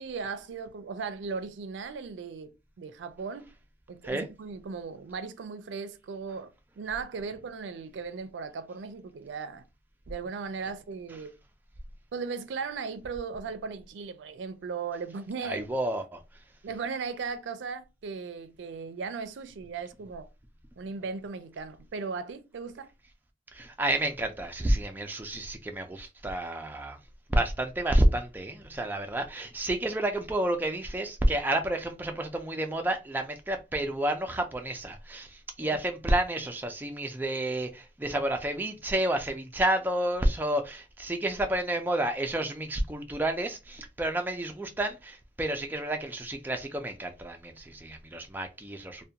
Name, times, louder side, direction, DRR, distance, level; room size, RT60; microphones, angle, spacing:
voice 1, 0.0-3.5 3.9-9.6 10.1-11.3 12.1-15.7 16.6-20.3 20.8-22.9 35.6-35.8, right 5 dB, 85° right, 0.4 m, -37 dB
voice 2, 15.4-16.2 23.5-27.0 27.3-49.0, right 1 dB, 10° right, 0.3 m, -30 dB
2.4 x 2.1 x 2.7 m
head